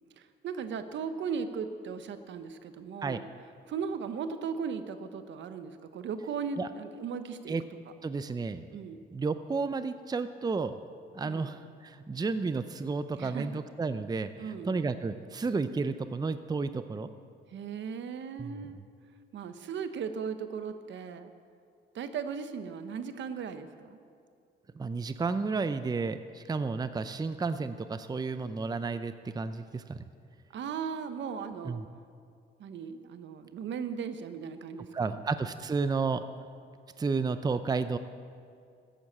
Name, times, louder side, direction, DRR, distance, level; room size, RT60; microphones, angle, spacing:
voice 1, 0.2-3.2 3.7-7.5 8.7-9.0 11.2-11.5 13.2-13.6 14.4-14.7 17.5-18.8 19.3-21.3 21.9-24.0 30.5-31.8 32.6-35.2, right 6 dB, 65° right, 10 dB, 1.0 m, -37 dB
voice 2, 8.0-8.7 9.1-10.7 11.1-17.1 18.4-18.6 24.8-30.0 31.6-31.9 34.9-36.2 37.0-38.0, right 4 dB, 20° right, 11 dB, 0.6 m, -32 dB
14.0 x 10.5 x 7.3 m, 2.4 s
cardioid pair, 90°, 20 cm